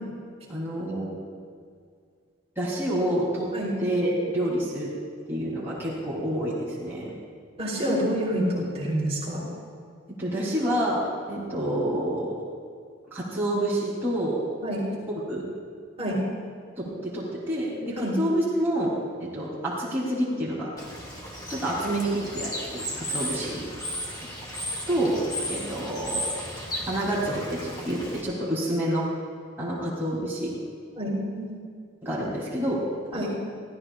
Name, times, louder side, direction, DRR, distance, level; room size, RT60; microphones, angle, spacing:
voice 1, 0.5-1.2 2.5-3.5 3.8-4.9 5.3-7.1 10.2-12.3 13.1-14.4 15.3-15.4 16.8-18.9 19.2-20.7 21.5-23.6 24.9-25.1 25.5-26.3 26.9-29.1 29.6-30.5 32.0-32.8 33.1-33.3, right 1 dB, 10° right, -8 dB, 3.4 m, -28 dB
voice 2, 7.6-9.5 14.6-14.8 16.0-16.2 18.0-18.2 30.9-31.6 33.1-33.3, equal, 30° right, -4 dB, 3.9 m, -28 dB
Bird / Water, 20.8-28.2, equal, 20° left, 2.4 m, -34 dB
24.0 x 15.5 x 2.5 m, 2.2 s
head